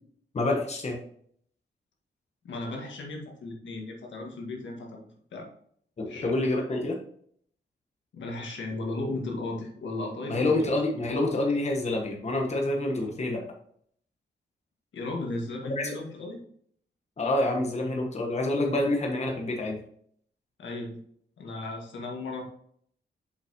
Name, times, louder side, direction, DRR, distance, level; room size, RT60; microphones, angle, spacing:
voice 1, 0.3-1.0 6.0-7.0 10.3-13.4 15.6-15.9 17.2-19.8, left 2 dB, 35° left, 1 dB, 1.2 m, -27 dB
voice 2, 2.4-5.5 6.1-6.3 8.1-10.6 14.9-16.4 20.6-21.0 21.4-22.4, left 2 dB, 85° left, 0 dB, 1.8 m, -35 dB
7.1 x 5.4 x 2.9 m, 0.63 s
wide cardioid pair, 120°, 19 cm